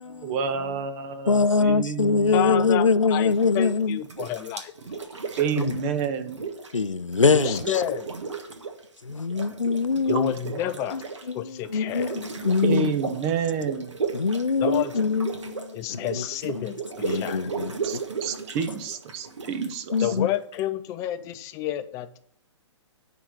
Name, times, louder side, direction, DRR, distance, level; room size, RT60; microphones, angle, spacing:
voice 1, 0.2-2.4 5.4-6.4 12.6-13.9 17.8-20.1, right 6 dB, 30° right, 0.7 m, -29 dB
voice 2, 1.3-4.0 5.6-5.9 6.7-7.8 9.0-10.3 10.9-11.0 11.3-12.9 14.1-16.2 16.5-16.6 17.0-18.0 19.9-20.3, left 4 dB, 90° left, 0.4 m, -23 dB
voice 3, 2.3-5.0 7.3-8.1 10.1-11.0 11.3-12.2 14.6-14.9 15.7-17.4 20.0-22.2, left 12 dB, 20° left, 0.4 m, -30 dB
sound 1, 3.3-3.7 4.0-6.8 7.1-8.8 9.1-20.6, right 5 dB, 70° right, 1.4 m, -34 dB
9.9 x 3.8 x 6.1 m
figure-of-eight pair, 125°, 16 cm